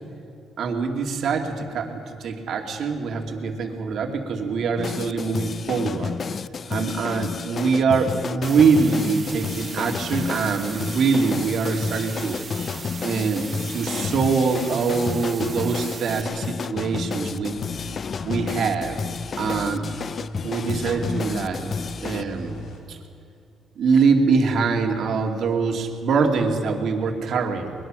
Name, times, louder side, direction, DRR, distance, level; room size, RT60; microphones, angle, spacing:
voice 1, 0.6-6.1 6.7-12.4 13.0-17.5 18.2-19.0 19.4-19.9 20.4-21.7 22.0-22.6 22.9-23.0 23.8-27.7, right 5 dB, 65° right, 3 dB, 2.5 m, -23 dB
sound 1, 4.8-22.2, left 6 dB, 45° left, 0.4 m, -31 dB
sound 2, 8.4-16.2, right 5 dB, 45° right, 1.2 m, -38 dB
sound 3, 17.3-22.8, left 1 dB, 75° left, 3.6 m, -40 dB
21.5 x 20.5 x 6.2 m, 2.4 s
cardioid pair, 90°, 0 cm